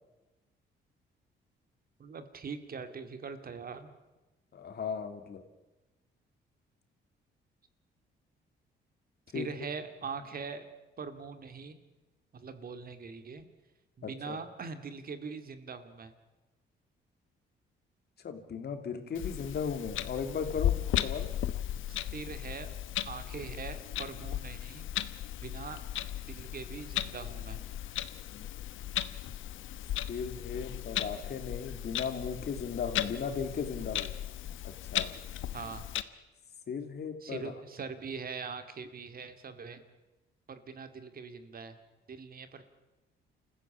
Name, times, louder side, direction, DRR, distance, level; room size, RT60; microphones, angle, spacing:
voice 1, 2.0-3.9 9.3-10.6 11.0-11.8 12.3-13.5 14.0-16.1 21.9-22.8 23.0-24.9 25.4-25.8 26.3-27.6 35.5-35.8 37.2-39.8 40.5-41.8 42.1-42.6, right 5 dB, 50° right, 9 dB, 2.3 m, -42 dB
voice 2, 4.5-5.4 9.3-9.5 14.0-14.4 18.2-20.8 21.0-21.3 30.1-34.1 34.6-35.1 36.7-37.5, left 6 dB, 55° left, 7 dB, 2.9 m, -36 dB
Clock, 19.1-36.0, left 12 dB, 80° left, 1.1 m, -36 dB
28.0 x 15.0 x 8.7 m, 1.1 s
cardioid pair, 90°, 20 cm